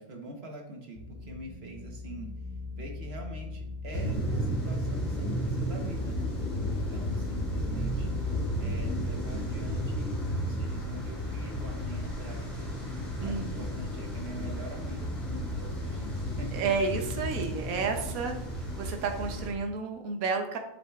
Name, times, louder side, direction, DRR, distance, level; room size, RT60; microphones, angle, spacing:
voice 1, 0.0-2.3 2.7-6.3 6.9-8.1 8.5-12.7 13.2-16.8, right 1 dB, 45° right, 2 dB, 1.3 m, -44 dB
sound 1, 0.9-17.0, left 3 dB, 15° left, 1.9 m, -41 dB
sound 2, 3.9-19.5, equal, 60° left, 3.0 m, -33 dB
voice 2, 13.2-13.7 16.5-20.6, right 4 dB, 75° right, 4 dB, 1.3 m, -31 dB
7.5 x 6.6 x 2.4 m, 0.85 s
omnidirectional pair, 1.5 m